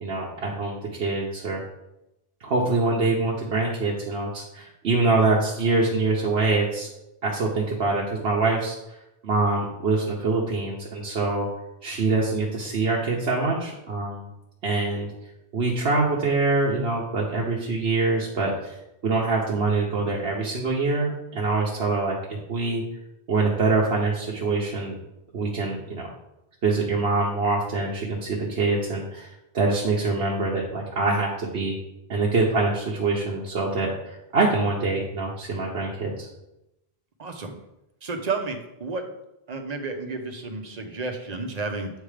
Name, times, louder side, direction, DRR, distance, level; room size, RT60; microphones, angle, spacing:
voice 1, 0.0-1.6 2.4-6.9 7.2-8.8 9.2-11.5 11.8-14.3 14.6-15.1 15.5-18.7 19.0-22.8 23.3-25.0 25.3-26.1 26.6-29.3 29.5-31.8 32.1-36.3, right 3 dB, 80° right, -3 dB, 1.2 m, -24 dB
voice 2, 37.2-37.5 38.0-39.0 39.5-41.9, right 3 dB, 45° right, 4 dB, 0.9 m, -31 dB
8.3 x 3.4 x 4.9 m, 0.88 s
omnidirectional pair, 1.1 m